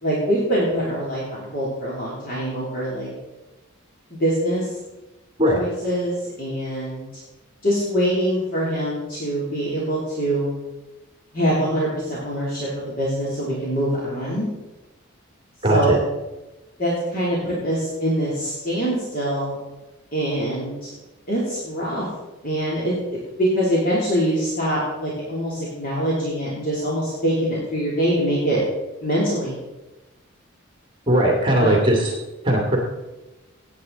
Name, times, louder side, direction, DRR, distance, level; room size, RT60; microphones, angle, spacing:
voice 1, 0.0-3.1 4.1-4.7 5.5-7.1 7.6-10.5 11.3-12.7 13.0-14.5 15.7-16.0 16.8-19.6 20.1-20.9 21.3-22.1 22.4-28.6 29.0-29.6 31.6-31.7, equal, 45° left, -7 dB, 3.1 m, -24 dB
voice 2, 15.6-16.0 31.1-32.1 32.4-32.8, right 1 dB, 25° right, -1 dB, 2.4 m, -18 dB
17.5 x 8.6 x 4.0 m, 1.1 s
head